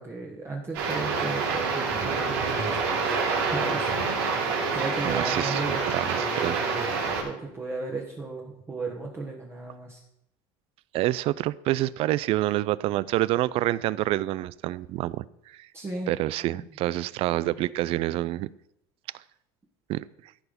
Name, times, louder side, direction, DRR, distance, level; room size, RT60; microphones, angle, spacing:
voice 1, 0.0-2.8 3.0-4.3 4.7-6.9 7.2-10.0 15.7-16.1 16.5-16.6, right 3 dB, 20° right, -2 dB, 1.4 m, -35 dB
sound 1, 0.7-7.2, right 4 dB, 85° right, 3.3 m, -27 dB
voice 2, 5.0-6.6 10.9-15.7 16.1-18.5 19.9-20.1, right 16 dB, 50° right, 20 dB, 0.4 m, -27 dB
14.0 x 4.8 x 5.2 m, 0.78 s
supercardioid pair, 125°, 12 cm